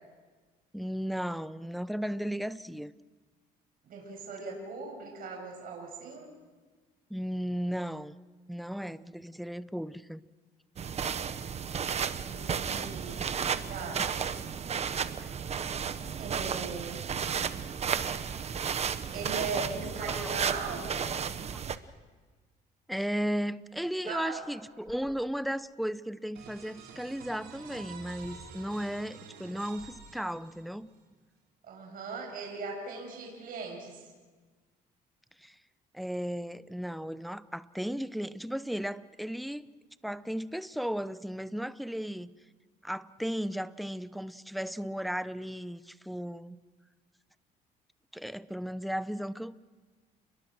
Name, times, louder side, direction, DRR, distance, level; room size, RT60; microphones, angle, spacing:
voice 1, 0.7-2.9 7.1-8.2 8.5-10.2 15.2-15.3 20.0-20.2 21.5-21.6 22.9-30.9 35.4-35.6 35.9-39.7 40.0-42.3 42.8-46.6 48.1-49.6, equal, ahead, 15 dB, 0.7 m, -35 dB
voice 2, 3.8-6.3 12.2-13.3 13.7-14.0 16.2-17.2 19.1-21.2 24.1-24.4 31.6-34.0, right 4 dB, 55° right, 1 dB, 6.7 m, -39 dB
sound 1, 10.8-21.8, right 7 dB, 40° right, 1.1 m, -33 dB
sound 2, 23.6-23.7 24.1-25.6 28.1-28.6 29.4-30.6, left 2 dB, 40° left, 6.2 m, -57 dB
sound 3, 26.4-31.0, right 6 dB, 85° right, 4.6 m, -49 dB
29.5 x 22.0 x 6.3 m, 1.4 s
cardioid pair, 110°, 17 cm